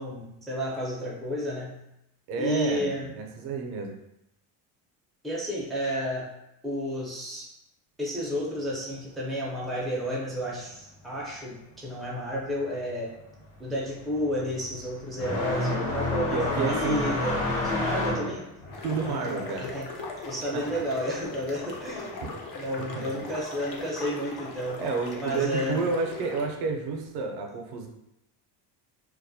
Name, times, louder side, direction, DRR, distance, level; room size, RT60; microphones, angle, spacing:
voice 1, 0.0-1.8 2.4-3.1 5.2-6.3 6.6-7.5 8.0-13.1 13.6-18.5 18.9-19.9 20.2-22.2 22.5-24.8 25.2-25.9, equal, ahead, -4 dB, 0.5 m, -31 dB
voice 2, 2.3-4.0 16.3-17.0 18.8-19.8 20.7-20.8 22.2-22.3 23.0-23.1 24.8-27.9, right 4 dB, 60° right, 3 dB, 0.6 m, -30 dB
sound 1, 12.6-12.9 13.2-21.5 21.8-22.9 23.9-24.0 24.8-24.9 26.6-26.7, left 2 dB, 85° left, 1.2 m, -30 dB
sound 2, 18.7-26.5, left 3 dB, 55° left, 0.6 m, -40 dB
2.3 x 2.1 x 2.6 m, 0.84 s
supercardioid pair, 100°, 43 cm